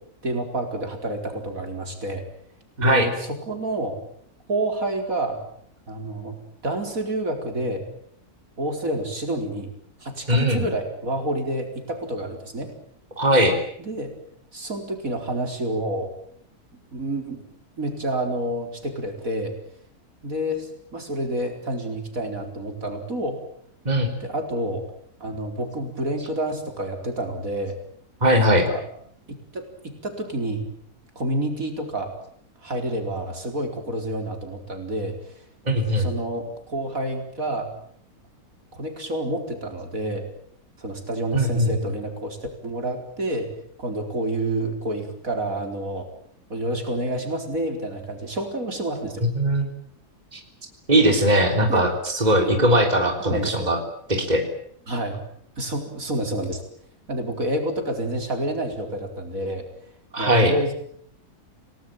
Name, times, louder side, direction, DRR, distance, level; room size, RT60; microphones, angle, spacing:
voice 1, 0.2-2.2 2.8-4.0 4.5-5.4 5.9-6.4 6.6-7.8 8.6-9.7 10.0-12.7 13.8-14.1 14.5-16.1 16.9-17.4 17.8-19.5 20.2-23.4 24.2-24.9 25.2-27.8 28.5-28.8 29.3-30.7 31.2-32.1 32.6-35.2 36.0-37.7 38.7-40.2 40.8-42.4 42.6-43.5 43.8-46.1 46.5-49.2 51.7-51.9 52.3-52.6 53.2-53.7 54.9-55.2 55.6-56.6 57.1-59.6 60.2-60.7, right 1 dB, 60° right, 5 dB, 4.9 m, -28 dB
voice 2, 10.3-10.7 13.2-13.6 23.9-24.1 28.2-28.7 35.7-36.1 41.3-41.7 49.4-49.7 50.3-50.4 50.9-53.8 54.1-54.4 60.1-60.5, equal, 25° right, 4 dB, 3.7 m, -19 dB
28.5 x 19.5 x 9.1 m, 0.66 s
omnidirectional pair, 1.6 m